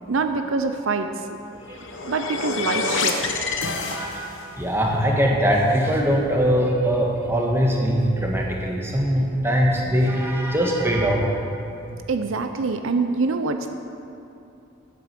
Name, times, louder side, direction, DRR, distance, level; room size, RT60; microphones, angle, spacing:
voice 1, 0.1-1.1 2.0-3.3 12.1-13.7, right 4 dB, 75° right, 7 dB, 0.6 m, -25 dB
sound 1, 1.5-4.5, left 4 dB, 65° left, 1.0 m, -27 dB
voice 2, 3.9-4.2 4.6-11.2, equal, 10° right, -1 dB, 1.4 m, -21 dB
9.6 x 8.4 x 6.7 m, 2.7 s
head